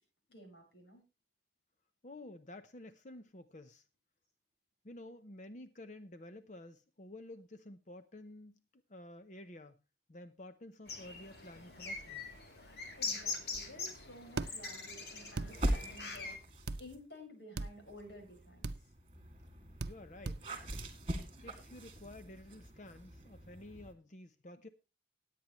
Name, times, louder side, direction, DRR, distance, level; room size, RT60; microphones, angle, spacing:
voice 1, 0.3-1.0 13.0-18.9, left 1 dB, 85° left, 5.5 m, -54 dB
voice 2, 2.0-3.8 4.8-9.8 10.1-12.3 19.8-20.4 21.4-24.7, left 1 dB, 45° left, 0.7 m, -51 dB
sound 1, 10.9-16.4, left 4 dB, 70° left, 2.7 m, -43 dB
sound 2, 14.4-14.5 15.4-15.5 16.7-16.8 17.6-17.7 18.6-18.8 19.8-20.0 20.2-20.4, right 3 dB, 70° right, 0.6 m, -37 dB
sound 3, 15.5-17.0 17.7-23.9, right 1 dB, 30° right, 2.3 m, -42 dB
19.5 x 8.6 x 3.1 m
head